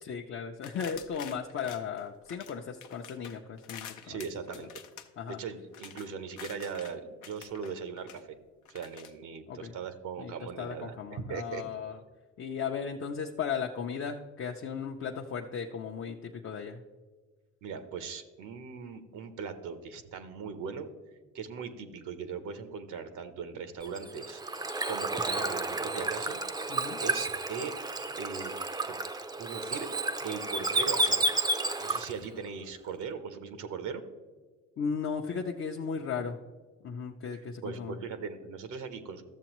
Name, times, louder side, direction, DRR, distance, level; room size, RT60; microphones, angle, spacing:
voice 1, 0.0-4.2 5.2-5.4 9.5-9.7 10.2-10.3 10.6-12.0 12.4-16.8 26.7-27.0 34.8-36.4 36.8-38.0, left 6 dB, 45° left, 1 dB, 0.6 m, -36 dB
sound 1, 0.6-2.5 2.8-7.0 7.2-8.2 8.6-9.1, left 9 dB, 80° left, 0.7 m, -48 dB
voice 2, 4.0-4.7 5.3-8.3 8.7-11.6 17.6-20.9 21.3-24.4 24.9-26.4 27.0-27.7 28.2-28.5 28.9-29.0 29.4-29.9 30.2-31.3 31.8-34.0 37.6-39.2, right 6 dB, 80° right, 10 dB, 0.8 m, -39 dB
Bird / Water, 23.8-32.2, right 2 dB, 15° right, 0.4 m, -31 dB
13.0 x 7.0 x 3.0 m, 1.4 s
cardioid pair, 90°, 30 cm